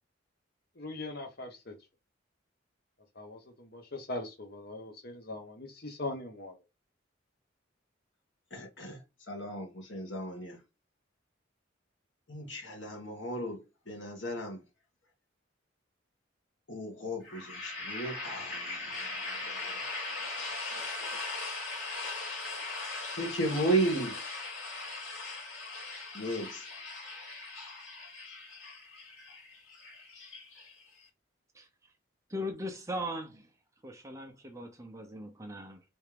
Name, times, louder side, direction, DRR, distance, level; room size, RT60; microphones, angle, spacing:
voice 1, 0.8-1.7 3.1-6.6, left 2 dB, 55° left, 1.1 m, -41 dB
voice 2, 8.5-9.0 9.3-10.6 12.3-13.6 13.9-14.6 16.7-20.3 20.7-21.1 23.1-24.2 26.1-26.7, right 1 dB, 70° left, 1.9 m, -35 dB
sound 1, 17.2-31.0, left 3 dB, 85° left, 2.3 m, -40 dB
voice 3, 32.3-33.5 33.8-35.8, equal, 15° right, 0.7 m, -39 dB
4.3 x 3.5 x 3.4 m
head